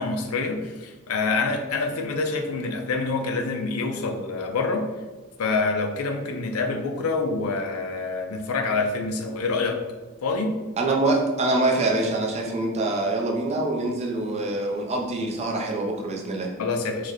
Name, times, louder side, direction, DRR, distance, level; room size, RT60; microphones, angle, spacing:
voice 1, 0.0-4.9 5.4-9.9 10.2-10.6 16.6-17.1, left 3 dB, 75° left, 4 dB, 0.4 m, -26 dB
voice 2, 10.8-16.5, right 2 dB, 30° right, 1 dB, 0.4 m, -25 dB
3.1 x 2.1 x 3.7 m, 1.2 s
head